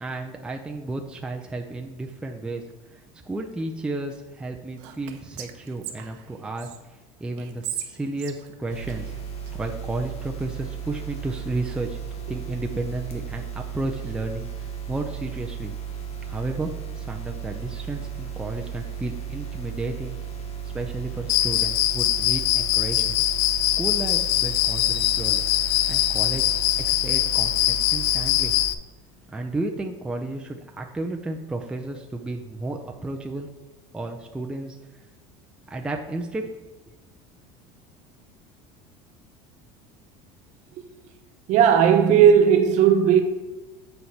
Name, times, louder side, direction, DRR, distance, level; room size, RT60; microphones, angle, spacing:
voice 1, 0.0-2.6 2.9-6.7 7.2-9.1 9.5-12.0 12.3-15.7 16.3-20.2 20.6-23.2 23.8-26.4 26.8-28.5 29.3-33.5 33.9-34.8 35.7-36.5, right 2 dB, 5° right, 0.5 m, -32 dB
Whispering, 4.8-6.8 7.4-9.5, right 11 dB, 85° right, 0.8 m, -38 dB
sound 1, 8.7-28.7, right 8 dB, 50° left, 1.2 m, -35 dB
Cricket, 21.3-28.7, left 15 dB, 80° left, 0.4 m, -22 dB
voice 2, 41.5-43.2, right 8 dB, 55° right, 1.0 m, -16 dB
8.2 x 4.5 x 4.1 m
cardioid pair, 140°, 14 cm